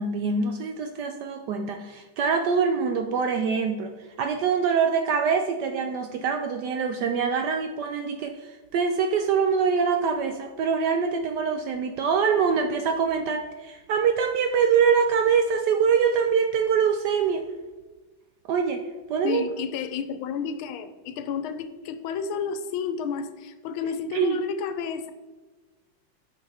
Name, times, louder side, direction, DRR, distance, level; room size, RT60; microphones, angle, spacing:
voice 1, 0.0-3.9 4.2-17.4 18.5-18.8 19.1-19.4 24.1-24.4, right 6 dB, 75° right, 5 dB, 1.0 m, -24 dB
voice 2, 19.2-25.1, left 6 dB, 90° left, 10 dB, 1.5 m, -31 dB
8.8 x 5.5 x 3.4 m, 1.2 s
omnidirectional pair, 2.2 m